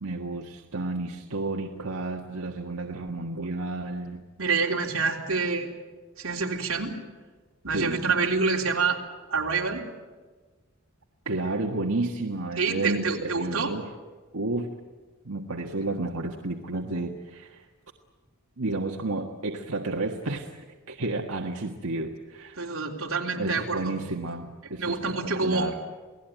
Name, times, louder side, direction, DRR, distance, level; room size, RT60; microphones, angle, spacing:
voice 1, 0.0-4.2 7.7-8.0 11.2-13.9 14.3-14.7 15.2-17.6 18.6-20.5 20.9-22.6 23.3-25.1 25.4-25.8, right 2 dB, 90° right, 1 dB, 1.6 m, -31 dB
voice 2, 4.4-5.7 6.2-7.0 7.6-9.0 9.3-9.8 12.6-13.7 22.6-24.0 24.8-25.7, right 4 dB, 65° right, 0 dB, 3.6 m, -27 dB
28.5 x 18.5 x 9.3 m, 1.4 s
head